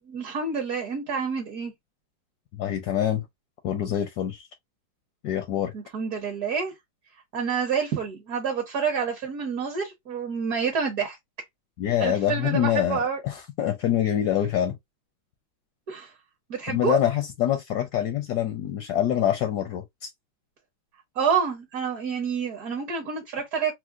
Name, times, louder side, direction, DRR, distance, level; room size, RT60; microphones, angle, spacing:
voice 1, 0.0-1.7 5.7-6.7 7.3-11.2 12.0-13.2 15.9-16.1 16.5-17.0 21.1-23.7, right 6 dB, 55° right, 1.1 m, -28 dB
voice 2, 2.5-3.2 3.6-4.5 5.2-5.7 11.8-14.8 16.7-20.1, left 10 dB, 75° left, 0.9 m, -25 dB
4.6 x 2.0 x 2.4 m
omnidirectional pair, 2.3 m